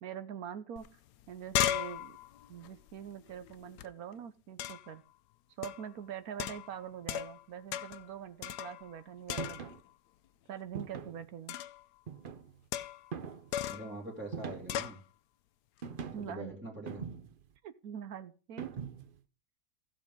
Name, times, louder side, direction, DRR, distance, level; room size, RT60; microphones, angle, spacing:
voice 1, 0.0-1.0 1.3-2.2 2.5-5.0 5.6-9.7 10.5-11.6 16.1-16.5 17.6-18.7, right 9 dB, 70° right, 12 dB, 1.1 m, -44 dB
sound 1, 0.8-0.9 1.1-3.9 4.6-5.0 5.6-5.9 6.4-7.4 7.7-8.1 8.4-9.0 9.3-9.9 11.5-11.8 12.7-13.1 13.5-13.9 14.7-15.0, left 12 dB, 80° left, 1.2 m, -36 dB
sound 2, 9.4-9.8 10.7-11.3 12.1-12.6 13.1-13.6 14.3-14.9 15.8-16.3 16.9-17.5 18.6-19.2, right 6 dB, 55° right, 0.6 m, -42 dB
voice 2, 13.6-15.0 16.2-17.1, right 2 dB, 5° right, -2 dB, 1.9 m, -43 dB
15.5 x 6.2 x 3.6 m, 0.37 s
omnidirectional pair, 1.7 m